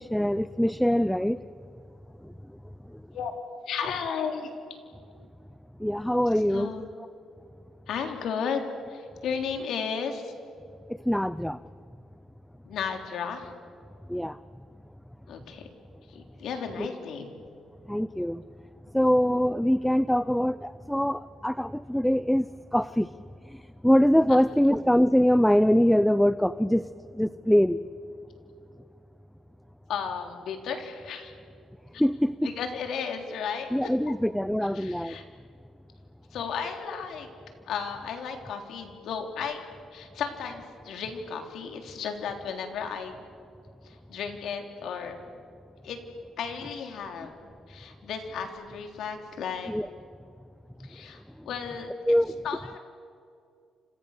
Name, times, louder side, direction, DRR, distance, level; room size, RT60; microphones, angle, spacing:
voice 1, 0.0-1.4 5.8-6.7 11.1-11.6 14.1-14.3 16.8-16.9 17.9-18.4 18.9-22.5 22.7-23.1 23.8-26.8 27.2-27.8 32.0-32.3 33.7-35.1 49.7-49.8 52.1-52.3, equal, 5° left, 15 dB, 0.6 m, -23 dB
voice 2, 3.7-4.5 6.5-6.9 7.9-8.6 8.9-10.3 12.7-13.5 15.3-15.7 16.1-17.3 24.3-24.4 29.9-31.3 31.9-32.0 32.4-33.9 34.7-35.3 36.3-37.3 37.7-43.1 43.8-45.2 45.8-46.0 46.4-49.7 50.8-52.2 52.4-52.8, left 6 dB, 75° left, 4 dB, 3.5 m, -34 dB
30.0 x 26.5 x 6.7 m, 2.3 s
cardioid pair, 75°, 0 cm